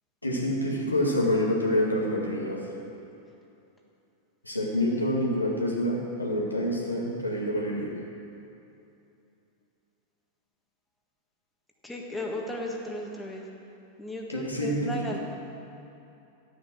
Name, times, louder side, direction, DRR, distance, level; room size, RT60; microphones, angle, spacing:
voice 1, 0.2-2.7 4.4-8.0 14.3-15.2, left 1 dB, 85° left, -2 dB, 2.0 m, -27 dB
voice 2, 11.8-13.5 14.0-15.2, left 1 dB, 5° left, -1 dB, 1.7 m, -35 dB
12.5 x 9.1 x 6.3 m, 2.7 s
figure-of-eight pair, 90°, 0 cm